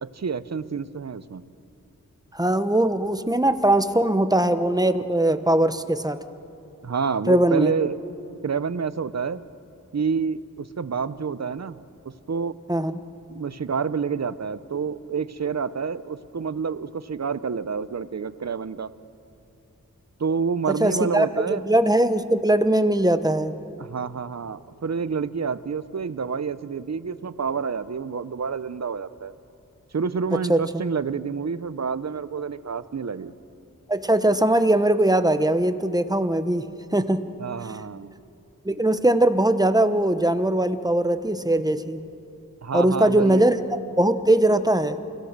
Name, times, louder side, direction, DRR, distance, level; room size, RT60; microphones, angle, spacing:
voice 1, 0.0-1.4 6.8-8.0 8.4-9.4 9.9-11.8 12.3-12.6 13.3-18.9 20.2-21.6 23.8-29.3 29.9-33.3 37.4-38.1 42.6-43.5, right 5 dB, 55° right, 14 dB, 0.7 m, -28 dB
voice 2, 2.3-6.2 7.3-7.7 12.7-13.0 20.8-23.5 30.5-30.6 33.9-37.2 38.6-42.0 42.7-43.6 44.0-45.0, right 1 dB, 10° right, 10 dB, 1.0 m, -20 dB
29.5 x 16.5 x 6.7 m, 2.9 s
wide cardioid pair, 70°, 33 cm